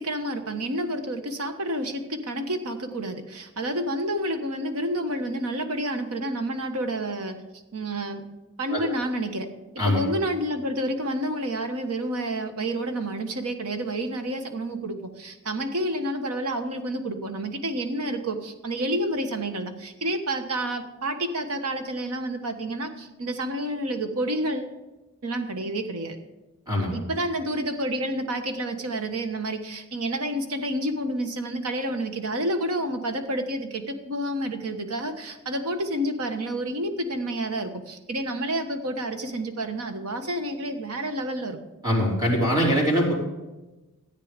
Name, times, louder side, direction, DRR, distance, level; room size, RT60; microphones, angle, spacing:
voice 1, 0.0-7.3 7.7-8.2 8.6-9.5 9.8-24.7 25.2-26.2 26.7-41.6, right 1 dB, 80° right, 7 dB, 1.3 m, -29 dB
voice 2, 41.8-43.1, equal, 15° right, -3 dB, 3.4 m, -22 dB
13.5 x 8.7 x 5.2 m, 1.1 s
head